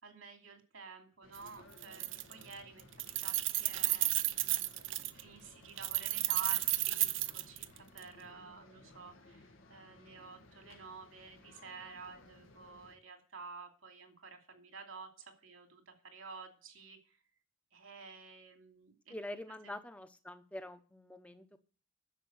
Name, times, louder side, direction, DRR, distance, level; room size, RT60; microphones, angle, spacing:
voice 1, 0.0-2.8 3.2-17.2 17.7-19.1 19.6-19.8, right 4 dB, 90° right, 4 dB, 2.7 m, -51 dB
sound 1, 1.2-13.0, left 2 dB, 85° left, 1.7 m, -59 dB
Keys jangling, 1.3-1.5 1.8-2.5 2.8-5.2 5.8-8.0, right 17 dB, 70° right, 0.6 m, -33 dB
voice 2, 19.1-21.6, left 1 dB, 5° left, 9 dB, 0.9 m, -45 dB
10.0 x 7.2 x 8.0 m, 0.39 s
head